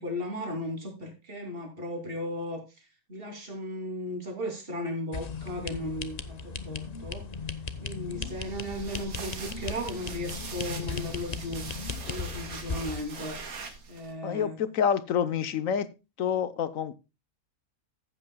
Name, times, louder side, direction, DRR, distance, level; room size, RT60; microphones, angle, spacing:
voice 1, 0.0-7.3 7.8-11.7 12.1-13.4 13.9-14.6, left 1 dB, 40° right, 3.1 m, -36 dB
sound 1, 5.1-13.0, left 5 dB, 35° left, 0.8 m, -37 dB
sound 2, 8.2-14.1, right 4 dB, 75° right, 2.1 m, -42 dB
voice 2, 14.2-15.9 16.2-16.9, left 8 dB, 65° left, 1.3 m, -27 dB
15.0 x 8.3 x 2.2 m
omnidirectional pair, 1.6 m